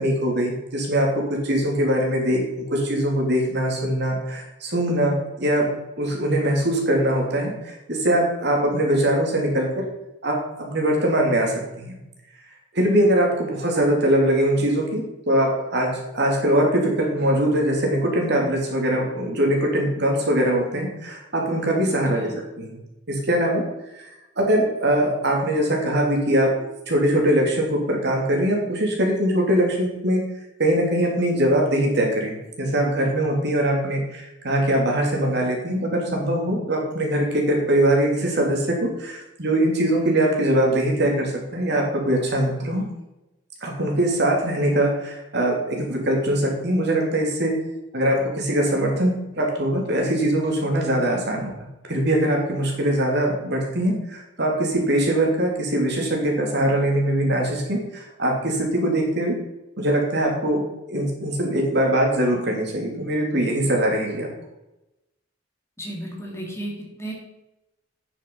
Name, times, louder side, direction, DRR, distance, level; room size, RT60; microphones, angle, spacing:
voice 1, 0.0-5.7 6.0-9.8 10.2-12.0 12.7-22.8 23.1-23.6 24.4-26.5 26.9-30.2 30.6-42.8 43.6-47.5 47.9-51.5 51.9-59.4 59.8-60.6 60.9-64.3, right 1 dB, 60° right, 0 dB, 3.0 m, -22 dB
voice 2, 65.8-67.1, right 1 dB, 15° left, -2 dB, 2.7 m, -34 dB
9.6 x 7.4 x 5.6 m, 0.95 s
head